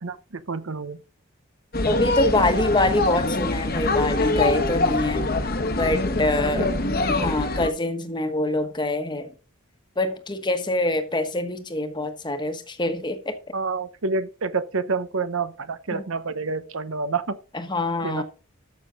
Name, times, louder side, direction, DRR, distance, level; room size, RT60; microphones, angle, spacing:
voice 1, 0.0-1.0 6.6-6.7 13.5-17.4 18.0-18.2, right 4 dB, 70° right, 0.9 m, -28 dB
sound 1, 1.7-7.7, left 2 dB, 45° left, 1.1 m, -24 dB
voice 2, 1.8-5.3 5.8-6.7 7.1-9.3 10.0-13.4 15.9-16.0 17.5-18.2, left 2 dB, 20° left, 1.2 m, -25 dB
13.0 x 6.3 x 3.8 m
head